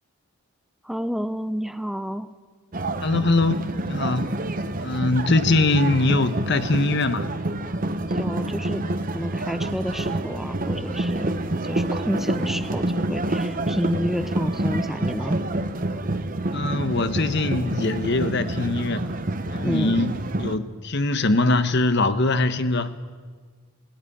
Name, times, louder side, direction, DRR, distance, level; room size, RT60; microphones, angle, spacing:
voice 1, 0.8-2.3 8.1-8.8 9.1-11.3 11.6-12.8 13.1-15.4 19.6-20.0, equal, ahead, 11 dB, 0.5 m, -29 dB
sound 1, 2.7-20.6, right 1 dB, 40° right, 1.0 m, -28 dB
voice 2, 3.0-4.4 4.8-7.3 16.5-19.1 19.5-20.1 20.4-22.9, left 2 dB, 55° left, 11 dB, 1.1 m, -22 dB
18.0 x 16.5 x 9.9 m, 1.5 s
head